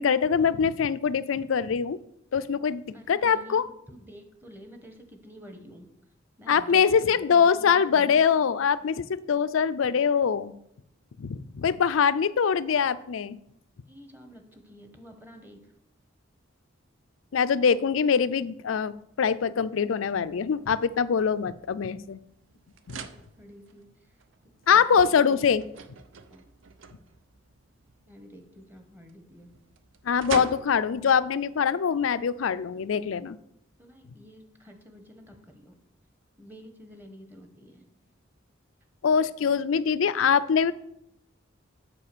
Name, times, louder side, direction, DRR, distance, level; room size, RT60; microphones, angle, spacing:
voice 1, 0.0-2.0 2.3-3.6 6.5-10.5 11.2-13.4 17.3-22.2 22.9-23.0 24.7-25.6 30.0-33.4 39.0-40.7, left 6 dB, 85° left, 15 dB, 0.4 m, -23 dB
voice 2, 2.9-3.6 3.9-5.9 6.4-8.3 13.8-15.6 23.1-24.1 24.7-25.4 26.3-26.5 28.1-29.5 33.8-35.8 36.4-37.8, equal, 10° right, 5 dB, 1.1 m, -49 dB
sound 1, 20.1-33.0, right 5 dB, 75° right, 0.7 m, -45 dB
8.3 x 4.9 x 6.7 m, 0.77 s
head